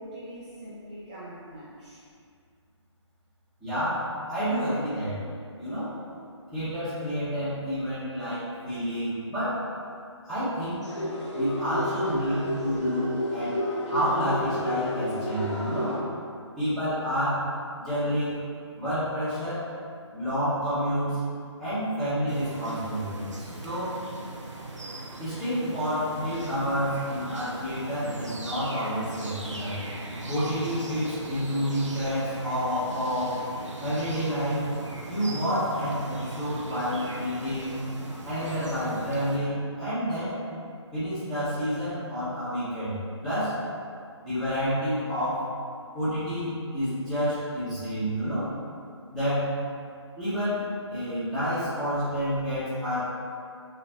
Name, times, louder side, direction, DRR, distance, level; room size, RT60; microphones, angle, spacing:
voice 1, 0.0-2.0, right 1 dB, 15° right, -9 dB, 0.3 m, -42 dB
voice 2, 3.6-5.2 5.6-6.0 6.5-9.6 10.2-10.8 11.3-13.6 13.9-16.0 16.6-17.5 17.8-18.4 18.8-19.7 20.1-21.2 21.6-24.0 25.2-29.8 30.3-33.4 33.8-34.7 35.1-37.8 38.2-40.4 40.9-43.6 44.2-45.5 45.9-48.5 49.1-49.5 50.2-53.0, equal, ahead, -18 dB, 1.2 m, -29 dB
sound 1, 10.8-16.0, equal, 75° left, 0.8 m, -31 dB
sound 2, 22.3-39.4, right 2 dB, 85° right, 0.7 m, -39 dB
4.1 x 2.8 x 2.9 m, 2.3 s
figure-of-eight pair, 155°, 15 cm